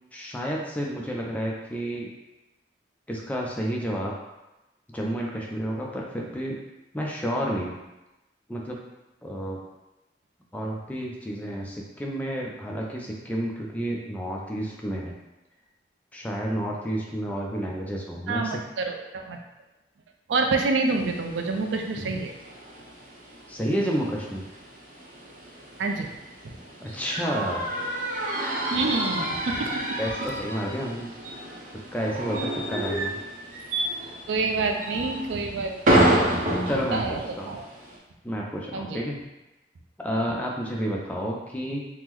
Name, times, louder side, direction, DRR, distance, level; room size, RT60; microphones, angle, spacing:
voice 1, 0.1-2.1 3.1-4.1 4.9-6.6 6.9-7.8 8.5-8.8 9.2-9.6 10.5-15.1 16.1-18.6 22.0-22.1 23.5-24.5 26.8-27.7 30.0-31.1 31.9-33.2 36.7-37.6 38.2-39.2 40.0-41.8, equal, 10° left, -2 dB, 0.3 m, -30 dB
voice 2, 18.3-19.4 20.3-22.3 25.8-26.1 26.4-26.6 28.7-29.8 34.3-36.2 36.7-37.6 38.7-39.0, right 3 dB, 90° right, 3 dB, 0.4 m, -27 dB
Large Wooden Door squeaks-Cartegna, 20.8-38.0, right 1 dB, 45° right, 0.6 m, -30 dB
3.6 x 2.0 x 2.9 m, 0.99 s
head